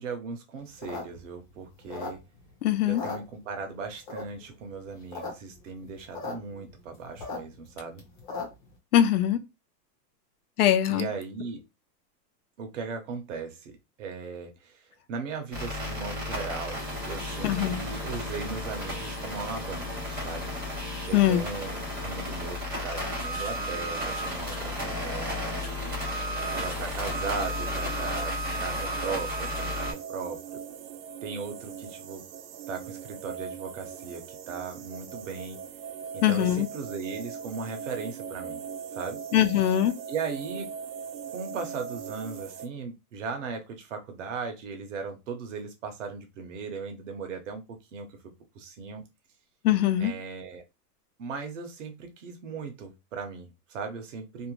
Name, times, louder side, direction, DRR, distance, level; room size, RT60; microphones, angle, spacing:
voice 1, 0.0-2.2 2.9-8.0 10.9-11.6 12.6-20.5 21.1-26.0 26.5-30.4 31.2-32.2 32.7-35.6 36.1-38.6 38.9-39.2 40.1-40.7 41.3-48.1 48.5-49.0 50.0-50.6 51.2-54.5, right 5 dB, 50° right, 0.8 m, -38 dB
sound 1, 0.7-2.5 2.8-3.7 4.1-4.5 4.9-5.3 5.6-5.7 5.8-6.3 6.7-8.7, left 4 dB, 30° left, 0.8 m, -37 dB
voice 2, 2.6-3.0 8.9-9.4 10.6-11.1 17.4-17.8 21.1-21.4 36.2-36.7 39.3-39.9 49.6-50.1, left 11 dB, 65° left, 0.5 m, -22 dB
sound 2, 15.5-29.9, left 1 dB, 15° right, 0.3 m, -33 dB
sound 3, 26.4-42.7, right 7 dB, 85° right, 0.7 m, -40 dB
2.6 x 2.1 x 2.9 m
supercardioid pair, 175°, 49 cm